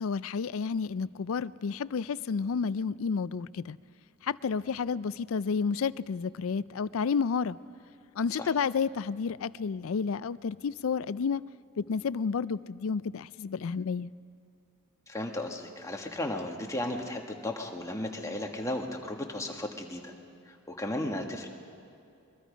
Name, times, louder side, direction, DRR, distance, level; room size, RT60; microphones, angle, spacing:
voice 1, 0.0-3.8 4.2-7.6 8.2-11.4 11.8-14.1, left 5 dB, 65° left, 18 dB, 0.4 m, -31 dB
voice 2, 15.1-20.1 20.5-21.5, left 1 dB, 15° left, 2 dB, 1.6 m, -35 dB
22.5 x 22.5 x 5.1 m, 2.4 s
head